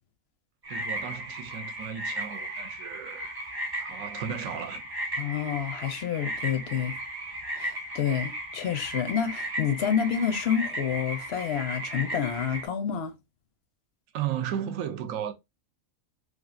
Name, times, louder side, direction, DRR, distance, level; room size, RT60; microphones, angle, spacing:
sound 1, 0.6-12.7, right 1 dB, 25° right, 0.6 m, -36 dB
voice 1, 0.7-3.4 3.8-4.8 14.1-15.3, right 9 dB, 75° right, 1.0 m, -34 dB
voice 2, 5.2-7.0 7.6-13.2, left 8 dB, 65° left, 0.7 m, -29 dB
3.3 x 2.5 x 2.5 m
omnidirectional pair, 1.4 m